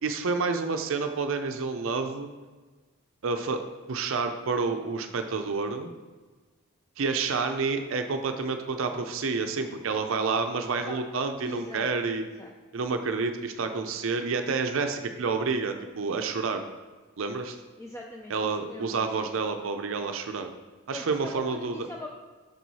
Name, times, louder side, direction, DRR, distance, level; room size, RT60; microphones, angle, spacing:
voice 1, 0.0-2.3 3.2-3.6 3.9-5.9 7.0-12.2 12.7-16.6 17.2-17.6 18.3-20.5 20.9-21.9, right 4 dB, 65° right, 6 dB, 0.5 m, -29 dB
voice 2, 11.4-11.9 12.2-12.5 17.8-19.1 20.9-22.1, left 1 dB, 15° left, 0 dB, 0.3 m, -42 dB
6.7 x 4.6 x 4.1 m, 1.3 s
head